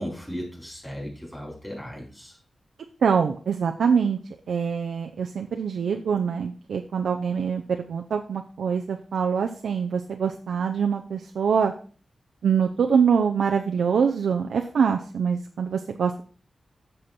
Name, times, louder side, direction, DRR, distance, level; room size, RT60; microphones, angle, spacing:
voice 1, 0.0-2.4, equal, 15° left, -1 dB, 4.2 m, -36 dB
voice 2, 3.0-4.2 4.5-7.6 7.9-11.7 12.4-16.2, right 6 dB, 90° right, 4 dB, 0.6 m, -24 dB
7.6 x 6.5 x 4.3 m, 0.41 s
cardioid pair, 55°, 0 cm